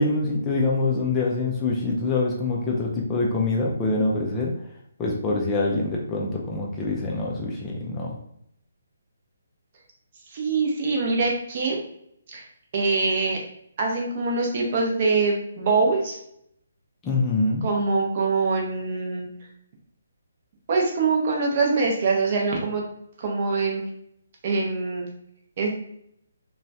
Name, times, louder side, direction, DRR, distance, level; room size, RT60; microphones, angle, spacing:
voice 1, 0.0-4.5 5.0-8.2 17.0-17.6, left 3 dB, 15° left, -3 dB, 0.4 m, -25 dB
voice 2, 10.3-11.8 12.3-12.4 12.7-13.4 13.8-16.2 17.6-19.3 20.7-22.8 23.2-23.8 24.4-25.1 25.6-25.7, right 4 dB, 35° right, 0 dB, 0.6 m, -24 dB
2.9 x 2.2 x 2.6 m, 0.73 s
figure-of-eight pair, 140°, 0 cm